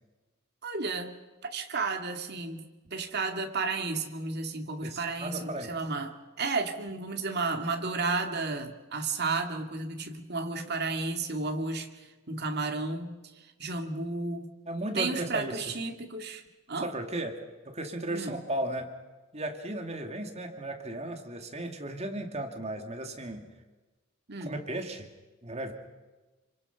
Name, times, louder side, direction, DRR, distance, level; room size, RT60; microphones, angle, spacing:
voice 1, 0.6-1.1 1.4-14.5 14.9-16.4 16.7-16.9 18.1-18.4 24.3-24.6, right 3 dB, 50° right, 4 dB, 2.5 m, -33 dB
voice 2, 4.8-5.8 14.7-15.6 16.8-18.9 19.3-23.5 24.4-25.1 25.4-25.7, right 1 dB, 30° right, 4 dB, 2.3 m, -35 dB
28.0 x 25.0 x 5.9 m, 1.2 s
head